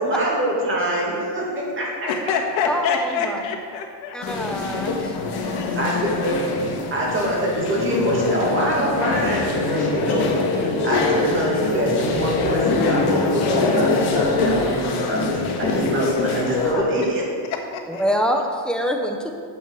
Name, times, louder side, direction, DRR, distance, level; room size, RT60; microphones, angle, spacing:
voice 1, 0.0-2.3 5.5-6.4 6.9-17.2, right 1 dB, 25° right, -4 dB, 2.4 m, -24 dB
voice 2, 2.1-4.2 5.4-6.1 16.7-16.8 17.7-18.0, left 5 dB, 70° left, 2 dB, 1.5 m, -26 dB
voice 3, 2.7-3.4 4.1-5.0 17.9-19.3, equal, ahead, 3 dB, 0.6 m, -25 dB
sound 1, 4.2-16.7, left 3 dB, 55° left, 1.5 m, -24 dB
8.5 x 7.4 x 4.6 m, 2.2 s
cardioid pair, 140°, 48 cm